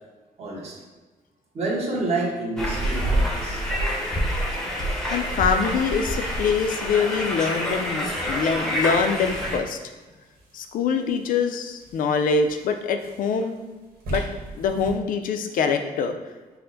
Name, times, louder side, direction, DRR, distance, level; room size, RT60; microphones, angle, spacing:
voice 1, 0.4-0.7 1.5-3.6, right 2 dB, 45° right, -3 dB, 1.2 m, -28 dB
sound 1, 2.6-9.6, equal, 5° left, 0.7 m, -27 dB
voice 2, 5.1-9.8 10.5-13.6 14.1-14.2 14.5-16.2, left 5 dB, 65° left, 6 dB, 0.5 m, -24 dB
sound 2, 5.6-15.0, right 2 dB, 85° right, 1.3 m, -42 dB
5.6 x 2.1 x 3.9 m, 1.3 s
cardioid pair, 140°, 15 cm